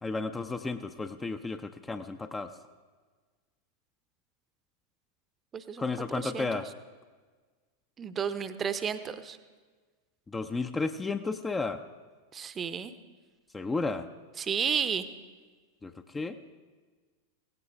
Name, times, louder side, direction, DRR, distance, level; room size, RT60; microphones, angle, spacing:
voice 1, 0.0-2.5 5.8-6.7 10.3-11.8 13.5-14.1 15.8-16.4, left 3 dB, 15° left, 8 dB, 0.5 m, -33 dB
voice 2, 5.5-5.9 6.2-6.5 8.0-9.4 12.3-12.9 14.4-15.0, right 7 dB, 20° right, 13 dB, 0.7 m, -32 dB
17.0 x 16.0 x 3.4 m, 1.4 s
figure-of-eight pair, 90°, 0 cm